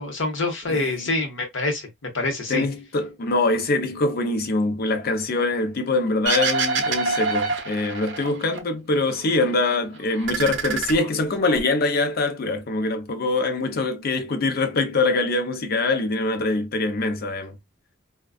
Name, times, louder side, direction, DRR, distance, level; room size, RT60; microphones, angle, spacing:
voice 1, 0.0-2.6, left 2 dB, 80° left, 0.9 m, -26 dB
voice 2, 0.7-1.1 2.5-17.6, left 2 dB, 55° left, 0.5 m, -24 dB
sound 1, 6.3-8.6 8.9-9.8 10.1-11.6, right 4 dB, 70° right, 0.6 m, -26 dB
2.4 x 2.3 x 2.2 m
head